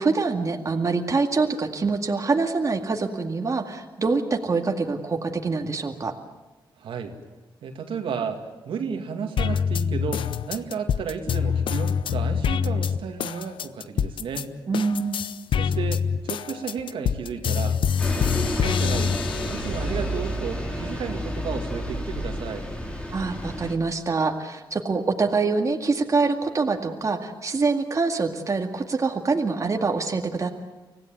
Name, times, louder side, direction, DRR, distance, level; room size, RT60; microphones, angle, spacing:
voice 1, 0.0-6.1 14.7-15.2 23.1-30.5, right 4 dB, 40° right, 3 dB, 2.1 m, -25 dB
voice 2, 6.8-7.1 7.6-14.5 15.6-17.8 18.1-19.2 19.5-22.7, right 6 dB, 80° right, 4 dB, 2.4 m, -33 dB
sound 1, 9.4-14.4 14.7-19.9 20.4-21.4, left 7 dB, 70° left, 0.7 m, -25 dB
Bus, 18.0-23.7, equal, 10° left, 3.9 m, -30 dB
25.0 x 17.0 x 9.2 m, 1.1 s
cardioid pair, 85°, 9 cm